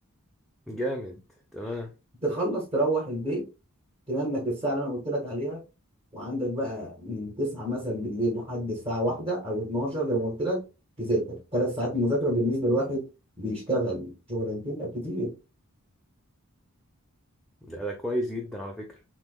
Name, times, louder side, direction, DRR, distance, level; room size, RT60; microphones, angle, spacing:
voice 1, 0.7-1.2 1.5-1.9 17.6-19.0, equal, ahead, 0.7 m, -32 dB
voice 2, 2.2-3.5 4.1-5.6 6.1-10.6 11.0-13.1 13.4-15.3, right 1 dB, 25° right, 1.7 m, -28 dB
7.3 x 3.0 x 2.3 m
head